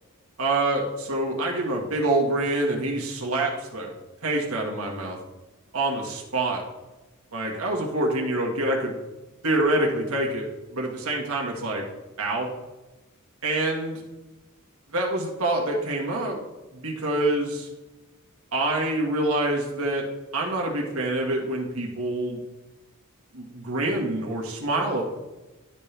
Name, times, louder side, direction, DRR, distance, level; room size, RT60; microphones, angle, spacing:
voice 1, 0.4-3.9 4.2-5.2 5.7-6.6 7.3-9.0 9.4-10.5 10.7-11.9 12.2-12.5 13.4-14.0 14.9-16.4 16.7-17.7 18.5-20.0 20.3-22.4 23.3-25.0, right 2 dB, 75° right, -1 dB, 1.7 m, -26 dB
11.5 x 4.4 x 3.4 m, 1.1 s
head